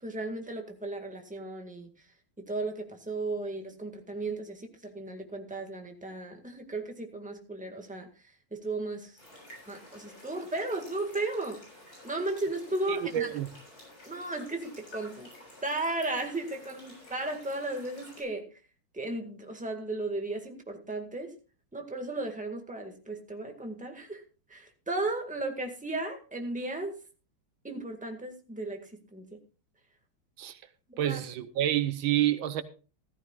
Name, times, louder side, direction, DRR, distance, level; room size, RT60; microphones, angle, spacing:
voice 1, 0.0-1.9 2.4-8.1 8.5-9.1 9.7-11.6 12.0-13.3 14.1-15.3 15.6-18.5 18.9-21.3 21.7-24.2 24.5-27.0 27.6-29.4 30.9-31.2, right 2 dB, 5° right, 1.6 m, -35 dB
sound 1, 9.2-18.2, left 1 dB, 45° left, 7.7 m, -51 dB
voice 2, 12.9-13.5 30.4-30.6 31.0-32.6, right 12 dB, 80° right, 1.5 m, -28 dB
16.0 x 14.0 x 2.4 m
omnidirectional pair, 2.2 m